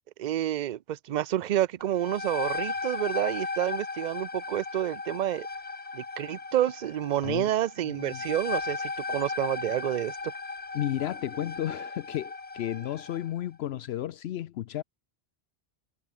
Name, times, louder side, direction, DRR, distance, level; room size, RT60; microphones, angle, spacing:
voice 1, 0.2-5.5 5.9-10.3, right 12 dB, 55° right, 0.6 m, -29 dB
sound 1, 1.8-13.3, left 3 dB, 35° left, 1.4 m, -36 dB
voice 2, 7.9-8.2 10.7-14.8, left 12 dB, 80° left, 0.8 m, -33 dB
omnidirectional pair, 1.1 m